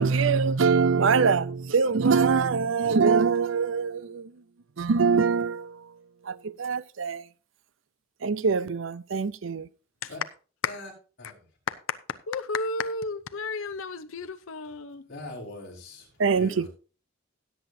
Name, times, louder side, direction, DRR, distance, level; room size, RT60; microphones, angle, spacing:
voice 1, 0.0-4.3 4.8-5.8 6.3-7.2 8.2-9.7 16.2-16.7, right 5 dB, 70° right, 0.5 m, -23 dB
voice 2, 11.7-12.0 12.3-15.1, left 4 dB, 85° left, 0.7 m, -32 dB
voice 3, 15.1-16.7, left 2 dB, 55° left, 5.2 m, -41 dB
17.0 x 8.1 x 2.7 m
head